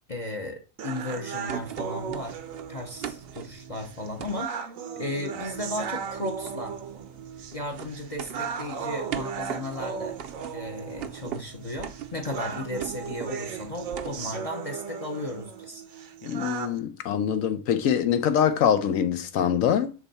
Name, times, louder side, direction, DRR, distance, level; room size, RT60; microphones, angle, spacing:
voice 1, 0.1-2.4 2.7-4.7 5.0-6.8 7.5-10.2 10.5-15.8, left 1 dB, 35° left, 0.6 m, -35 dB
sound 1, 0.8-16.8, right 7 dB, 80° right, 1.2 m, -37 dB
sound 2, 1.5-4.4 5.4-14.4, right 9 dB, 60° right, 0.7 m, -41 dB
voice 2, 16.2-19.9, left 8 dB, 85° left, 1.1 m, -24 dB
7.2 x 3.4 x 4.0 m
omnidirectional pair, 1.4 m